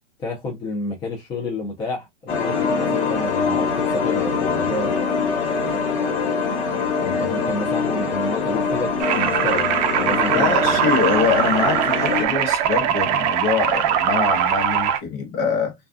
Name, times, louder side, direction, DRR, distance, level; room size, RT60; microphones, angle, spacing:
voice 1, 0.2-4.9 7.0-10.8, left 3 dB, 15° left, 0.5 m, -30 dB
sound 1, 2.3-12.2, left 5 dB, 65° left, 1.2 m, -23 dB
sound 2, 9.0-15.0, right 9 dB, 35° right, 0.5 m, -21 dB
voice 2, 10.3-15.7, left 5 dB, 40° left, 1.0 m, -24 dB
2.4 x 2.3 x 2.4 m
hypercardioid pair, 135°, 36 cm